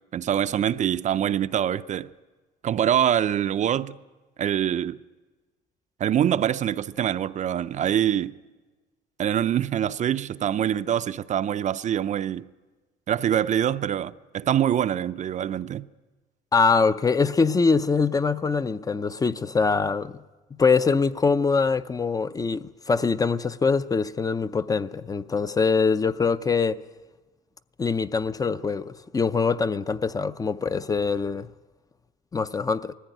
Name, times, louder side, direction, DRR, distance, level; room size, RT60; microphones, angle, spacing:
voice 1, 0.1-2.1 2.6-4.0 4.4-5.0 6.0-8.3 9.2-12.5 13.1-15.9, right 10 dB, 45° right, 0.5 m, -24 dB
voice 2, 16.5-20.2 20.6-26.8 27.8-31.5 32.3-32.9, left 4 dB, 20° left, 0.5 m, -23 dB
20.0 x 14.5 x 9.2 m
cardioid pair, 110°, 17 cm